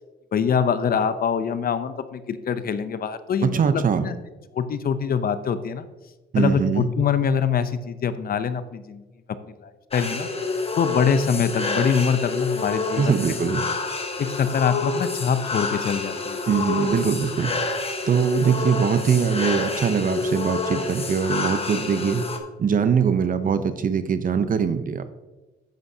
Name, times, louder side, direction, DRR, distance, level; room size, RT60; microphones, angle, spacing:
voice 1, 0.3-4.1 4.5-5.9 6.4-9.0 9.6-10.3 10.7-13.3 14.2-16.5, left 7 dB, 50° left, 12 dB, 0.6 m, -24 dB
voice 2, 3.4-4.1 6.3-6.9 12.9-13.6 16.5-17.5 18.1-22.3 22.6-25.1, right 7 dB, 45° right, 11 dB, 0.7 m, -22 dB
sound 1, 9.9-22.4, left 3 dB, 30° left, 1.2 m, -28 dB
10.5 x 7.7 x 2.8 m, 1.2 s
cardioid pair, 90°, 20 cm